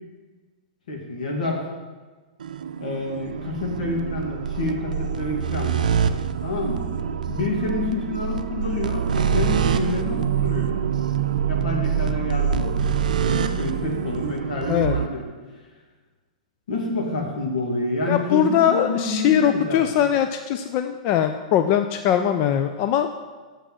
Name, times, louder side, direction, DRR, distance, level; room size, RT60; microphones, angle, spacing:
voice 1, 0.9-1.6 2.8-5.9 6.4-6.8 7.3-10.7 11.5-12.8 13.2-15.2 16.7-20.1, left 2 dB, 80° left, 0 dB, 2.3 m, -28 dB
sound 1, 2.4-15.1, right 7 dB, 85° right, 0.5 m, -25 dB
voice 2, 18.1-23.1, left 9 dB, 40° left, 8 dB, 0.4 m, -21 dB
6.7 x 6.2 x 7.6 m, 1.3 s
hypercardioid pair, 135°, 4 cm